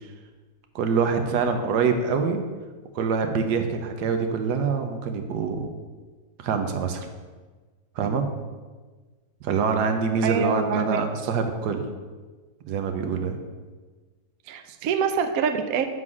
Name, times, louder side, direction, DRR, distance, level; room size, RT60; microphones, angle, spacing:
voice 1, 0.7-2.4 2.9-5.7 6.4-7.1 8.0-8.2 9.4-11.9 12.7-13.4, right 5 dB, 90° right, 6 dB, 1.3 m, -25 dB
voice 2, 10.2-11.0 14.5-15.9, right 6 dB, 70° right, 7 dB, 1.0 m, -25 dB
7.8 x 3.8 x 6.0 m, 1.4 s
omnidirectional pair, 1.7 m